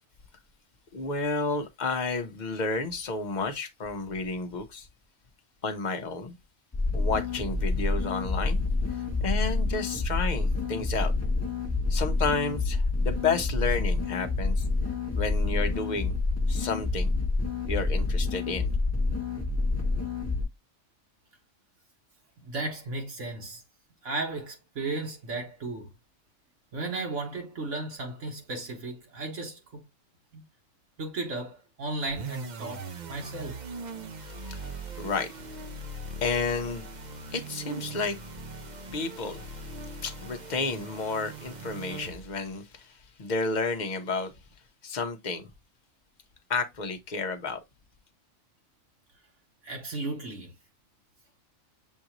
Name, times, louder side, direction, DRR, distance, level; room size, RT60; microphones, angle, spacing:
voice 1, 0.9-4.9 5.6-6.3 6.9-8.6 8.9-11.1 11.9-14.6 15.1-16.2 16.5-17.1 17.7-18.7 34.2-44.3 44.8-45.5 46.5-47.6, left 4 dB, 40° left, 0.8 m, -32 dB
sound 1, 6.7-20.4, left 3 dB, 10° left, 1.1 m, -28 dB
voice 2, 22.4-23.6 24.0-25.9 26.7-29.8 30.3-30.4 31.0-33.6 49.6-50.5, right 2 dB, 65° right, 1.4 m, -35 dB
sound 2, 32.1-42.5, right 3 dB, 45° right, 0.6 m, -40 dB
7.2 x 2.5 x 2.9 m
omnidirectional pair, 1.4 m